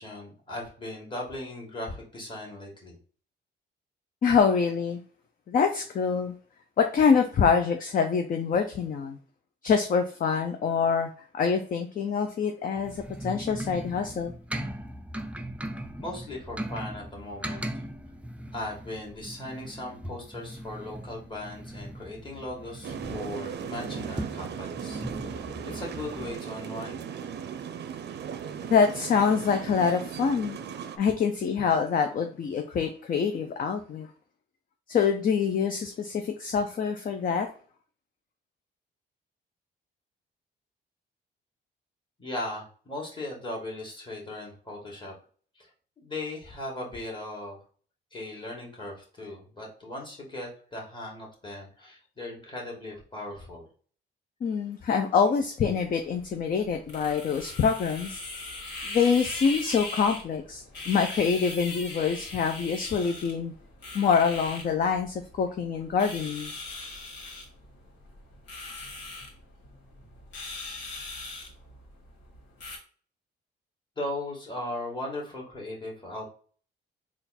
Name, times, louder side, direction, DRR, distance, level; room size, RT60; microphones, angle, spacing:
voice 1, 0.0-2.9 16.0-17.9 18.5-27.1 42.2-45.1 45.6-45.7 46.0-47.6 48.1-53.7 74.0-76.3, left 1 dB, 25° left, -1 dB, 1.9 m, -38 dB
voice 2, 4.2-5.0 5.5-6.3 6.8-9.2 9.6-14.3 28.7-30.6 31.0-34.1 34.9-37.5 54.4-58.2 58.8-63.5 63.9-66.5, left 6 dB, 45° left, 6 dB, 0.5 m, -25 dB
sound 1, 12.8-26.4, right 1 dB, 5° right, 0.4 m, -39 dB
sound 2, 22.8-31.0, right 8 dB, 55° right, 0.5 m, -37 dB
sound 3, 55.6-72.8, left 2 dB, 60° left, 1.9 m, -40 dB
3.8 x 2.4 x 4.2 m, 0.43 s
cardioid pair, 90°, 20 cm